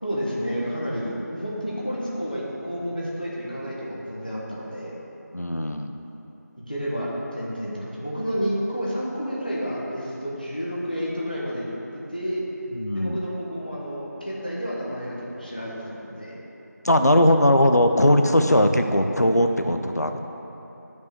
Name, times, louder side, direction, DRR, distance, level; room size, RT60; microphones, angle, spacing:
voice 1, 0.0-4.9 6.6-11.7 11.9-12.4 12.9-16.4, equal, 30° left, -6 dB, 1.2 m, -30 dB
voice 2, 5.3-5.9 12.8-13.2 16.8-20.2, left 1 dB, 60° left, 6 dB, 0.6 m, -19 dB
9.5 x 5.3 x 6.1 m, 3.0 s
figure-of-eight pair, 180°, 10 cm